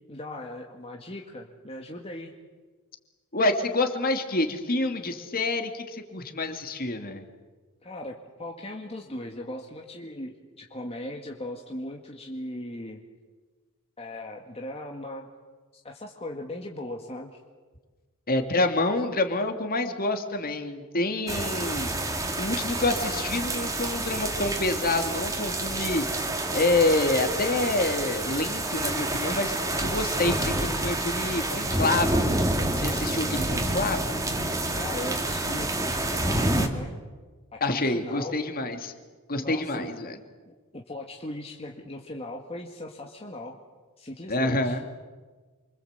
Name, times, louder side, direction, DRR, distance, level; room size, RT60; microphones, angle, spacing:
voice 1, 0.1-2.3 7.8-13.0 14.0-15.3 15.8-17.4 34.8-36.9 37.5-38.4 39.4-39.9 40.5-43.6 44.0-44.8, left 1 dB, 25° left, 1 dB, 2.0 m, -38 dB
voice 2, 3.3-7.2 18.3-21.9 22.4-26.1 26.5-32.3 32.8-34.2 37.6-38.9 39.3-40.2 44.3-44.8, left 2 dB, 40° left, 6 dB, 2.6 m, -27 dB
sound 1, 21.3-36.7, right 1 dB, 15° right, 2.3 m, -28 dB
28.5 x 25.0 x 8.2 m, 1.4 s
head